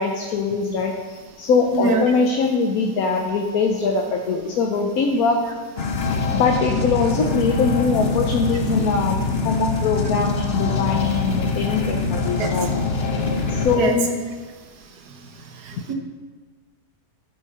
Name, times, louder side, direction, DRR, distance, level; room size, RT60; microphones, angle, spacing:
voice 1, 0.0-5.4 6.3-12.8 13.5-14.2, left 4 dB, 70° left, 2 dB, 1.3 m, -22 dB
voice 2, 1.7-2.0 12.4-12.5 13.8-13.9 15.9-16.0, right 3 dB, 85° right, 4 dB, 1.6 m, -21 dB
sound 1, 5.8-13.8, left 4 dB, 45° left, 1.0 m, -24 dB
12.0 x 6.4 x 5.5 m, 1.4 s
omnidirectional pair, 1.7 m